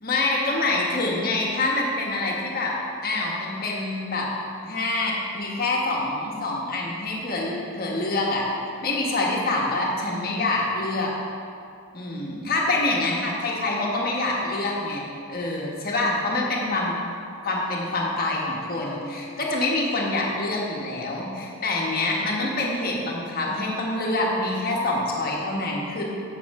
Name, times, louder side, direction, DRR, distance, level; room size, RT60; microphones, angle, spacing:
voice 1, 0.0-2.8 3.0-4.3 4.6-8.4 8.8-11.1 11.9-16.9 17.4-26.0, left 2 dB, 40° left, -2 dB, 1.3 m, -26 dB
7.9 x 7.4 x 4.8 m, 2.6 s
head